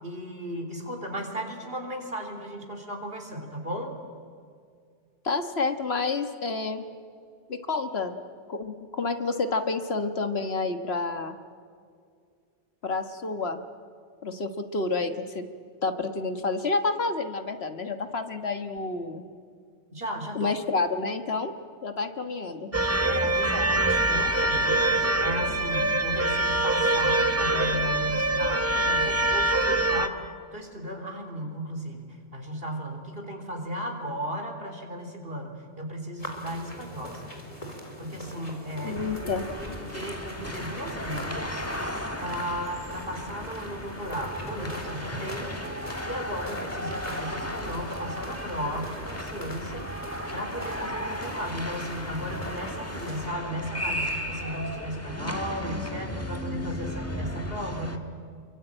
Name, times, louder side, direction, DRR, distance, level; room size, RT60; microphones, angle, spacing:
voice 1, 0.0-3.9 19.9-20.5 23.1-30.2 30.5-39.1 39.6-41.7 42.2-45.6 46.0-58.0, equal, 55° right, 4 dB, 3.8 m, -35 dB
voice 2, 5.2-6.8 7.5-8.2 8.5-11.4 12.8-13.6 14.2-15.5 15.8-19.2 20.3-21.5 21.8-22.7 38.8-39.4, left 3 dB, 65° left, 7 dB, 1.7 m, -29 dB
sound 1, 22.7-30.1, right 2 dB, 15° right, 1.1 m, -24 dB
sound 2, 36.2-53.3, equal, 30° left, 4.1 m, -43 dB
sound 3, 38.9-58.0, left 1 dB, 15° left, 1.6 m, -35 dB
28.0 x 23.5 x 9.0 m, 2.2 s
omnidirectional pair, 1.2 m